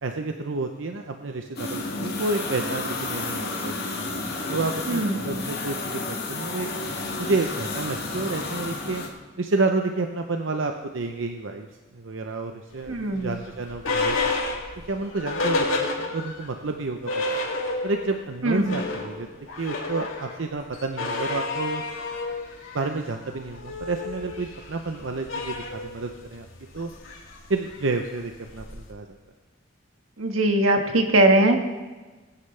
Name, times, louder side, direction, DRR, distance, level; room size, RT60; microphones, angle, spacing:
voice 1, 0.0-4.1 4.5-6.0 6.3-6.7 7.2-9.0 9.4-11.7 11.9-14.3 14.9-17.4 17.8-19.3 19.6-21.8 22.7-26.5 26.7-26.9 27.5-29.1, right 3 dB, 65° right, 5 dB, 0.7 m, -30 dB
sound 1, 1.6-9.1, left 3 dB, 50° left, 2.0 m, -31 dB
sound 2, 12.8-16.5 16.8-16.9 17.1-18.1 18.5-28.9, left 3 dB, 80° left, 2.5 m, -31 dB
voice 2, 12.9-13.3 18.4-18.8 30.2-31.6, right 1 dB, 90° right, 4 dB, 1.6 m, -20 dB
20.5 x 9.8 x 3.3 m, 1.3 s
head